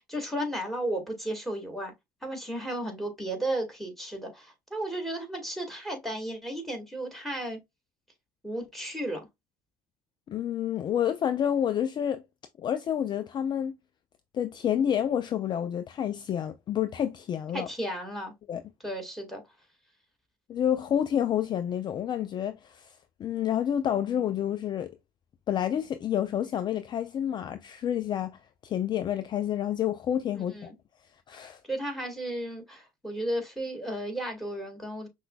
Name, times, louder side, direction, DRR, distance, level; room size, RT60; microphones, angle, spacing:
voice 1, 0.1-1.9 2.2-7.6 8.4-9.2 17.5-18.3 18.8-19.4 30.4-30.7 31.7-35.1, right 1 dB, ahead, 1.9 m, -34 dB
voice 2, 10.3-12.2 12.6-13.7 14.3-17.7 18.5-18.6 20.5-25.0 25.5-30.7 31.3-31.6, left 9 dB, 40° left, 0.4 m, -29 dB
5.7 x 2.2 x 2.3 m
hypercardioid pair, 65°, 11 cm